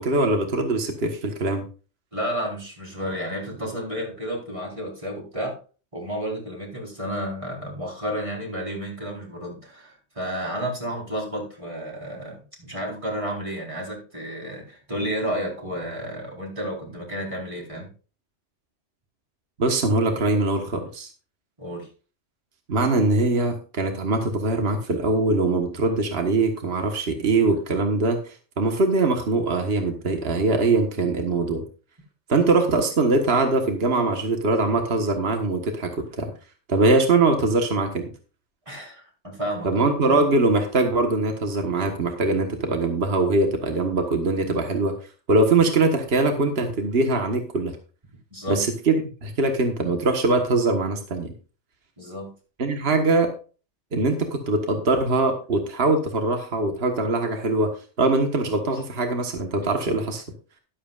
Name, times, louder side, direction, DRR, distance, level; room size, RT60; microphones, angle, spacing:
voice 1, 0.0-1.6 19.6-21.1 22.7-31.6 32.3-36.3 36.7-38.1 39.6-44.9 45.3-47.7 48.5-49.0 49.2-51.3 52.6-53.3 53.9-57.7 58.0-60.2, right 3 dB, 55° right, 4 dB, 1.7 m, -22 dB
voice 2, 2.1-5.6 5.9-17.9 21.6-21.9 38.7-39.8 48.3-48.6 52.0-52.3, equal, 25° right, -2 dB, 4.6 m, -31 dB
13.0 x 12.0 x 2.5 m, 0.36 s
omnidirectional pair, 1.2 m